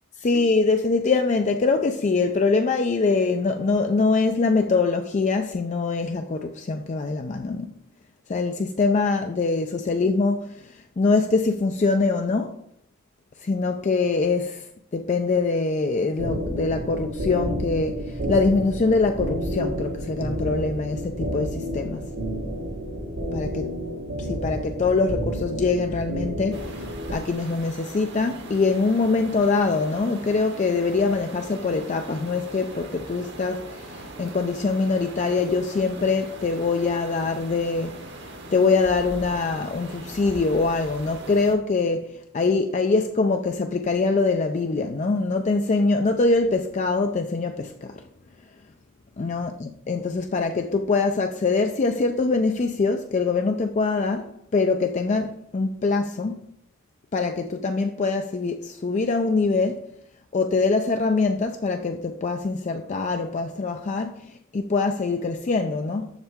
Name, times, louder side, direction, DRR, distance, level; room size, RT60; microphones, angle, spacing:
voice 1, 0.2-7.7 8.3-12.6 13.4-22.0 23.3-23.7 24.2-38.1 38.5-47.9 49.2-56.4 57.1-59.8 60.3-66.1, left 3 dB, 35° left, 0.4 m, -24 dB
sound 1, 16.2-27.1, equal, 75° right, 1.5 m, -30 dB
sound 2, 26.5-41.5, right 2 dB, 50° right, 1.1 m, -40 dB
7.2 x 6.4 x 3.5 m
head